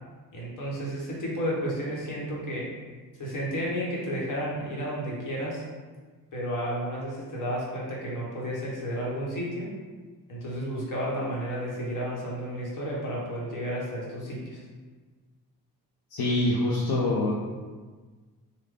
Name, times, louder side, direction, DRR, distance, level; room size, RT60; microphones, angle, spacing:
voice 1, 0.3-2.7 3.2-5.6 6.3-9.7 10.3-14.6, equal, 55° left, -4 dB, 1.1 m, -32 dB
voice 2, 16.1-17.4, left 1 dB, 70° left, -5 dB, 0.6 m, -25 dB
3.5 x 2.2 x 3.3 m, 1.4 s
cardioid pair, 100°, 37 cm